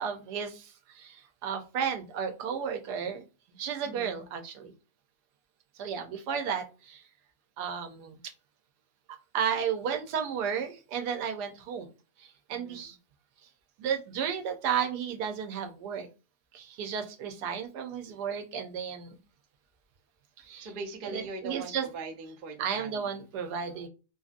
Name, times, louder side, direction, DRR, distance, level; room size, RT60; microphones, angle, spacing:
voice 1, 0.0-3.2 3.5-4.7 5.8-7.0 7.6-8.2 9.3-11.9 12.2-13.0 13.8-16.1 16.5-19.2 20.4-20.7 21.0-21.9 22.6-23.9, right 7 dB, 85° right, 5 dB, 1.2 m, -33 dB
voice 2, 3.8-4.3 12.5-12.9 20.6-23.2, right 3 dB, 70° right, 2 dB, 0.5 m, -41 dB
2.8 x 2.6 x 2.4 m, 0.32 s
omnidirectional pair, 1.7 m